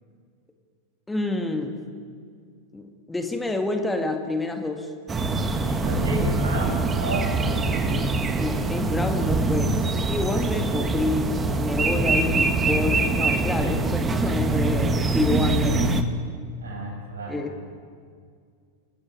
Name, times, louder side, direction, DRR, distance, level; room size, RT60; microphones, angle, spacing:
voice 1, 1.1-1.8 2.7-4.9 8.4-15.9 17.3-17.5, left 2 dB, 10° left, 5 dB, 1.9 m, -28 dB
sound 1, 5.1-16.0, right 3 dB, 20° right, 1.7 m, -24 dB
voice 2, 5.6-8.0 16.6-17.7, right 1 dB, 70° right, 2 dB, 6.5 m, -32 dB
27.5 x 15.5 x 9.9 m, 2.2 s
figure-of-eight pair, 90°, 0 cm